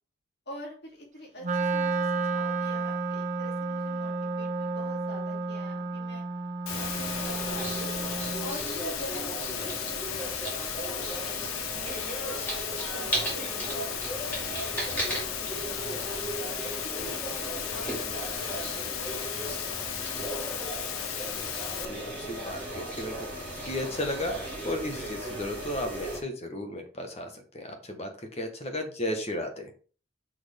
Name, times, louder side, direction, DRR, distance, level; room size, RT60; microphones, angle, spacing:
voice 1, 0.5-6.2 6.7-7.9 8.4-12.4 12.9-16.3 17.0-20.3, right 1 dB, 50° left, -2 dB, 2.9 m, -46 dB
Wind instrument woodwind instrument, 1.4-8.6, right 3 dB, 35° right, 0.5 m, -31 dB
Water, 6.7-21.9, left 13 dB, 80° left, 0.5 m, -36 dB
sound 1, 6.7-26.2, right 1 dB, 10° left, 2.3 m, -36 dB
voice 2, 21.8-23.1 23.7-24.3 24.6-29.7, left 1 dB, 30° left, 5 dB, 1.2 m, -34 dB
6.1 x 6.1 x 3.5 m, 0.39 s
head